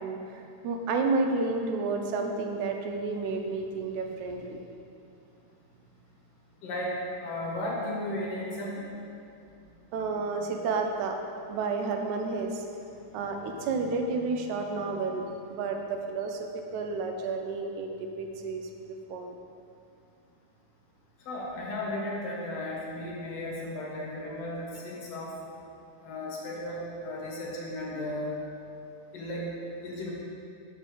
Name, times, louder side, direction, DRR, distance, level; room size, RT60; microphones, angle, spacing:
voice 1, 0.0-4.6 9.9-11.2 11.5-12.6 13.1-18.7 19.1-19.3, right 3 dB, 80° right, 3 dB, 1.9 m, -31 dB
voice 2, 6.6-6.9 7.2-8.9 21.3-25.3 26.0-28.4 29.1-29.5 29.8-30.1, left 1 dB, 60° left, -4 dB, 2.0 m, -35 dB
5.5 x 5.1 x 6.4 m, 2.6 s
omnidirectional pair, 3.6 m